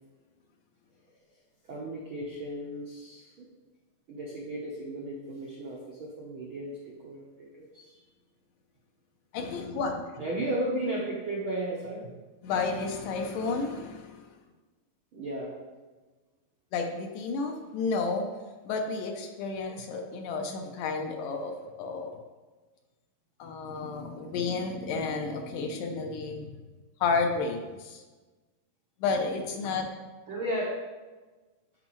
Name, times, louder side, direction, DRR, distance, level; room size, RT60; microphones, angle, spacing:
voice 1, 1.7-3.5 4.1-7.9 10.2-12.1 15.1-15.6 30.3-30.9, right 1 dB, 90° right, -4 dB, 1.1 m, -35 dB
voice 2, 9.3-9.9 12.4-14.2 16.7-18.3 18.7-22.1 23.4-26.5 27.0-28.0 29.0-29.9, left 4 dB, 75° left, 3 dB, 2.1 m, -31 dB
13.0 x 5.1 x 3.1 m, 1.3 s
omnidirectional pair, 4.1 m